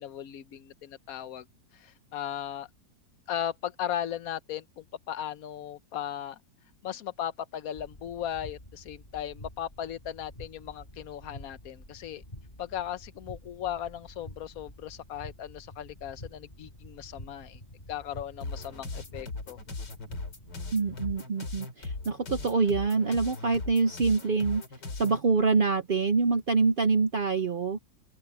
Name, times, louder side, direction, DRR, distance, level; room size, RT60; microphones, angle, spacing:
voice 1, 0.0-1.5 1.7-2.7 3.3-6.4 6.8-12.2 12.6-17.6 17.9-19.6, left 10 dB, 60° left, 1.2 m, -37 dB
sound 1, 7.7-21.2, left 1 dB, 25° left, 7.4 m, -48 dB
sound 2, 18.4-25.2, left 3 dB, 90° left, 3.8 m, -39 dB
voice 2, 20.7-24.6 25.0-27.8, right 4 dB, 60° right, 0.5 m, -25 dB
open air
omnidirectional pair, 1.8 m